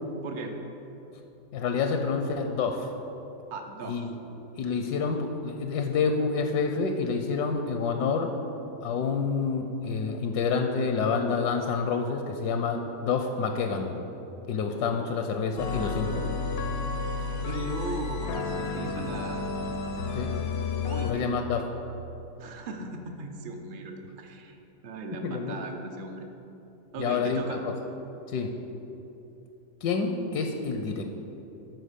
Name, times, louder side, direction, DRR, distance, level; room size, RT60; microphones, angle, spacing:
voice 1, 0.2-0.5 3.5-4.0 17.4-19.5 20.8-21.3 22.4-24.6 24.8-26.3 26.9-27.6, right 3 dB, 60° right, 3 dB, 0.5 m, -37 dB
voice 2, 1.5-2.9 3.9-4.2 4.5-8.3 8.8-13.9 14.5-16.3 20.1-20.3 21.0-21.6 25.2-25.6 27.0-27.7 28.3-28.6 29.8-31.0, left 5 dB, 80° left, 5 dB, 1.2 m, -28 dB
sound 1, 15.6-21.1, left 4 dB, 65° left, 0.6 m, -31 dB
12.5 x 4.5 x 5.1 m, 3.0 s
omnidirectional pair, 1.7 m